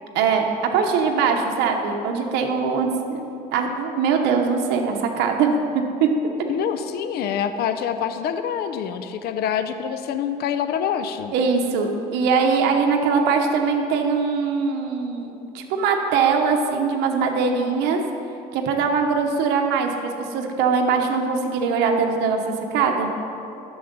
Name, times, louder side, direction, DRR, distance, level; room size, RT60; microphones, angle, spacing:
voice 1, 0.1-3.2 3.5-6.1 11.3-18.0 18.5-23.1, right 5 dB, 90° right, 3 dB, 1.0 m, -22 dB
voice 2, 6.5-11.3, left 8 dB, 70° left, 9 dB, 0.6 m, -26 dB
11.0 x 7.1 x 5.3 m, 2.8 s
cardioid pair, 110°, 17 cm